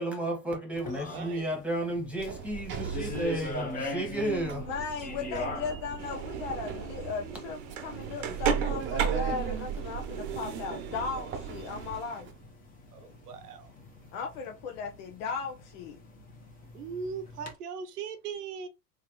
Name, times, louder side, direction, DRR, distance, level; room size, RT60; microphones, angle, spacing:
voice 1, 0.0-4.7, right 1 dB, 5° right, 1.4 m, -32 dB
sound 1, 0.7-17.5, left 1 dB, 20° left, 0.9 m, -43 dB
voice 2, 0.9-1.5 12.9-13.7 16.7-18.7, right 6 dB, 80° right, 0.9 m, -39 dB
Sliding door, 2.2-12.3, right 7 dB, 25° right, 0.8 m, -37 dB
voice 3, 4.7-12.3 14.1-16.0, left 5 dB, 55° left, 0.8 m, -37 dB
sound 2, 6.0-12.2, right 7 dB, 55° right, 0.9 m, -37 dB
3.5 x 3.1 x 3.0 m
hypercardioid pair, 110°, 45 cm